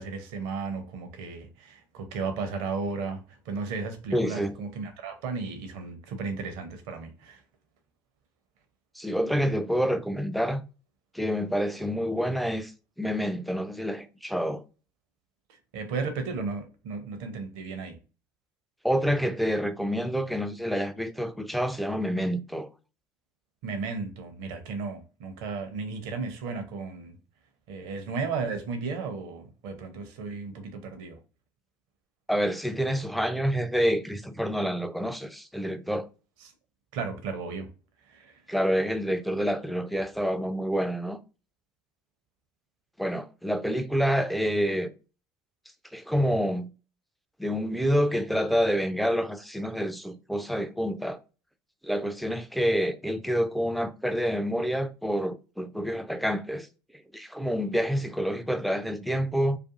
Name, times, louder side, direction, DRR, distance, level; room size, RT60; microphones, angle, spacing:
voice 1, 0.0-7.4 15.7-18.0 23.6-27.1 27.7-31.2 36.4-36.5 36.9-37.7 38.1-38.4, right 4 dB, 65° right, 0.6 m, -34 dB
voice 2, 4.1-4.5 9.0-10.6 11.1-12.7 13.0-14.6 18.8-22.7 32.3-36.1 38.5-41.2 43.0-44.9 45.9-46.7 47.4-51.2 51.8-56.7 57.1-59.6, equal, ahead, 0.3 m, -27 dB
2.5 x 2.4 x 2.4 m
figure-of-eight pair, 60°, 11 cm